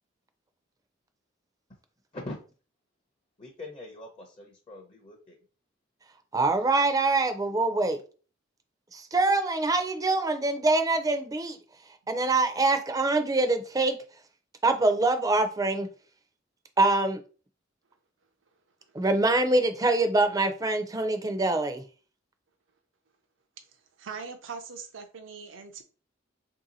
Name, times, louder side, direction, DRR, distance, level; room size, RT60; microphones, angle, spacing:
voice 1, 3.4-5.4, left 2 dB, 30° left, 0.7 m, -42 dB
voice 2, 6.3-8.0 8.9-11.6 12.1-14.0 14.6-15.9 16.8-17.2 18.9-21.8, right 2 dB, 20° right, 0.5 m, -24 dB
voice 3, 24.0-25.8, right 5 dB, 75° right, 0.6 m, -41 dB
3.3 x 2.7 x 3.9 m
head